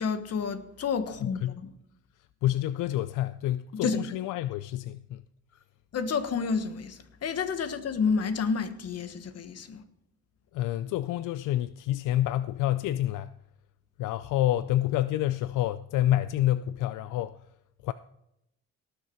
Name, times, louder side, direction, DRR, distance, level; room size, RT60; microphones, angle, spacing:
voice 1, 0.0-1.7 3.8-4.0 5.9-9.8, left 5 dB, 55° left, 1.3 m, -30 dB
voice 2, 1.2-1.6 2.4-5.2 10.5-13.3 14.0-17.4 17.8-17.9, left 13 dB, 85° left, 0.5 m, -28 dB
18.0 x 6.7 x 4.6 m
cardioid pair, 90°, 30 cm